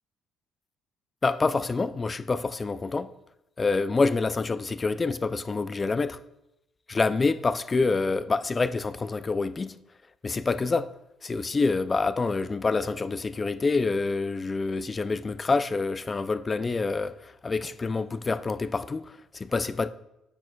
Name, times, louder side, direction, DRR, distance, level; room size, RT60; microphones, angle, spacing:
voice 1, 1.2-3.1 3.6-6.2 6.9-9.8 10.2-10.9 11.2-19.9, left 3 dB, 20° left, 0.3 m, -27 dB
10.5 x 8.6 x 2.3 m
cardioid pair, 140°, 0 cm